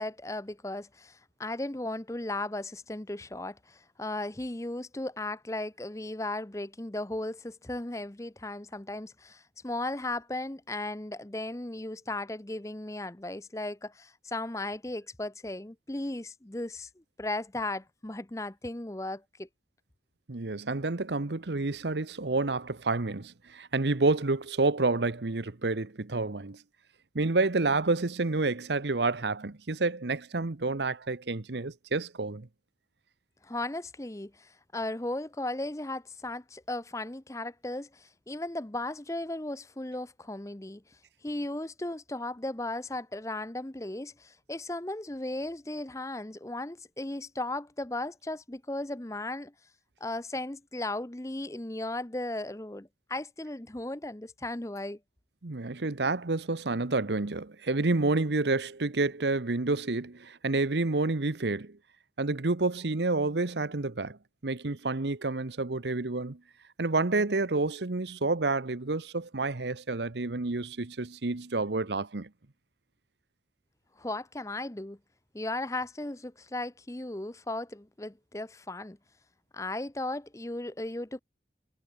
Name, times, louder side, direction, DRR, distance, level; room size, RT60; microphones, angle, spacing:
voice 1, 0.0-16.9 17.2-19.5 33.4-40.8 41.2-49.5 50.0-55.0 74.0-75.0 75.3-79.0 79.5-81.2, left 2 dB, 15° left, 0.8 m, -36 dB
voice 2, 20.3-26.6 27.1-32.5 55.4-61.8 62.2-64.2 64.4-66.4 66.8-72.3, right 3 dB, 80° right, 1.0 m, -29 dB
head